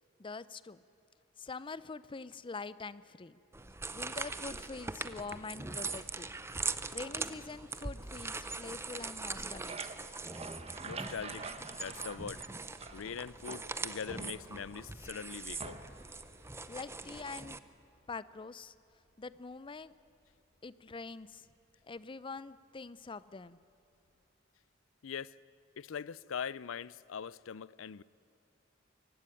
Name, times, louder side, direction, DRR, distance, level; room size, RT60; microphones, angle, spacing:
voice 1, 0.2-0.8 1.4-3.4 3.9-6.4 6.9-9.7 16.7-17.6 18.1-18.7 19.2-19.9 20.6-21.5 21.9-23.6, left 4 dB, 25° left, 0.5 m, -44 dB
sound 1, 3.5-17.6, right 3 dB, 15° right, 0.7 m, -41 dB
sound 2, 9.3-13.1 13.5-14.8 15.6-16.1, right 4 dB, 30° right, 1.2 m, -46 dB
Vehicle, 9.4-24.9, right 1 dB, 60° right, 6.8 m, -71 dB
voice 2, 10.8-11.4 11.7-12.4 12.9-15.8 25.0-25.3 25.8-28.0, left 7 dB, 80° left, 0.5 m, -42 dB
23.0 x 17.0 x 9.9 m
head